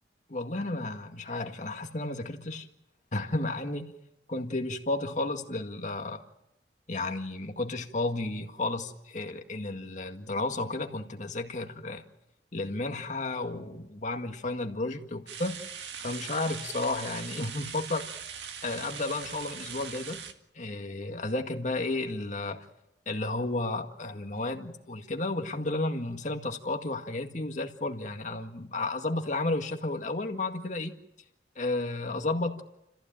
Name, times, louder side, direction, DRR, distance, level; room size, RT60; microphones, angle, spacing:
voice 1, 0.3-2.7 3.1-3.9 4.3-6.2 6.9-12.0 12.5-15.6 16.0-18.1 18.6-20.2 20.6-22.7 23.1-30.9 31.6-32.6, left 2 dB, 45° left, 2.0 m, -32 dB
sound 1, 15.3-20.3, right 7 dB, 75° right, 2.0 m, -41 dB
29.5 x 15.5 x 9.0 m
head